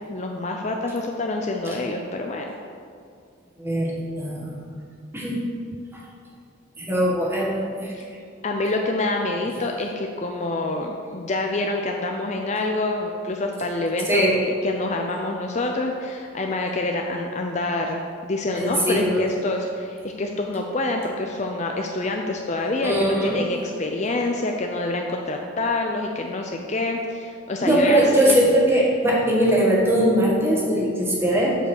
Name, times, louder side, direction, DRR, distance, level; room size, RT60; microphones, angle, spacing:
voice 1, 0.1-2.5 7.9-8.0 8.4-28.3, left 2 dB, 35° left, 2 dB, 0.5 m, -27 dB
voice 2, 3.6-4.7 5.1-5.4 5.9-6.0 6.8-7.9 14.1-14.4 18.5-19.2 22.8-23.4 27.6-31.6, right 1 dB, 10° right, -4 dB, 1.4 m, -21 dB
7.6 x 5.3 x 6.4 m, 2.3 s
head